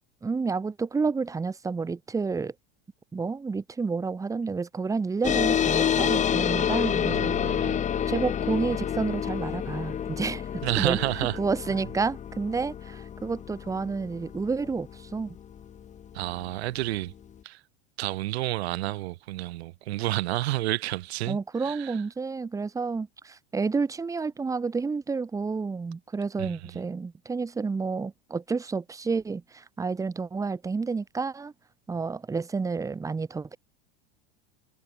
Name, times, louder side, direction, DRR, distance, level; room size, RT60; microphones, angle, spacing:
voice 1, 0.2-2.5 3.1-7.6 8.1-10.5 10.8-15.4 21.3-31.5 31.9-33.6, right 4 dB, 10° right, 1.6 m, -30 dB
sound 1, 5.2-16.2, left 8 dB, 25° left, 3.5 m, -28 dB
voice 2, 7.1-7.9 10.6-11.4 16.1-17.1 17.4-17.6 18.0-22.0 26.4-26.6, right 17 dB, 80° right, 1.7 m, -30 dB
supercardioid pair, 150°, 31 cm